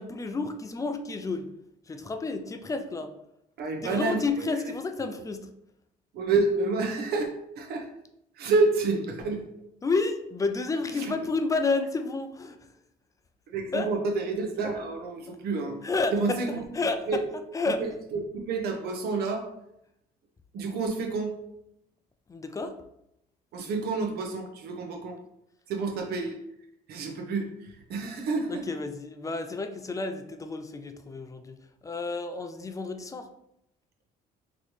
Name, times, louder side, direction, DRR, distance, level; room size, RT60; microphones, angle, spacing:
voice 1, 0.0-1.5 1.9-3.1 3.8-5.5 9.8-12.7 13.7-13.9 15.8-17.2 17.5-17.8 22.3-22.8 28.5-31.6 31.8-33.3, left 3 dB, 20° left, 7 dB, 0.4 m, -30 dB
voice 2, 3.6-4.2 6.1-7.3 7.6-7.9 8.4-9.5 10.9-11.1 13.5-15.8 16.1-16.7 17.1-17.2 18.1-19.4 20.5-21.3 23.5-25.2 25.7-26.4 26.9-28.7, right 3 dB, 70° right, 3 dB, 0.8 m, -28 dB
3.9 x 3.1 x 3.2 m, 0.80 s
cardioid pair, 110°, 17 cm